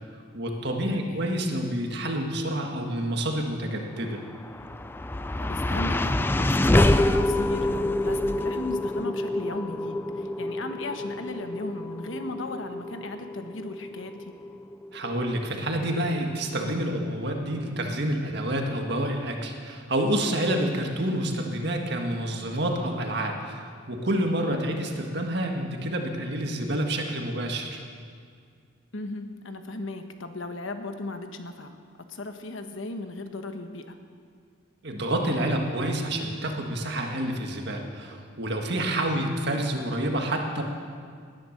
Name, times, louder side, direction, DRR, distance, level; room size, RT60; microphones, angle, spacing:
voice 1, 0.3-4.2 14.9-27.8 34.8-40.6, right 1 dB, 55° right, 2 dB, 1.8 m, -28 dB
voice 2, 0.9-1.2 5.4-14.3 24.5-24.6 28.9-31.8 32.1-34.0 39.0-39.3, left 2 dB, 70° left, 7 dB, 1.2 m, -36 dB
sound 1, 4.2-16.5, left 1 dB, 10° left, 0.3 m, -27 dB
19.0 x 10.5 x 6.6 m, 2.1 s
head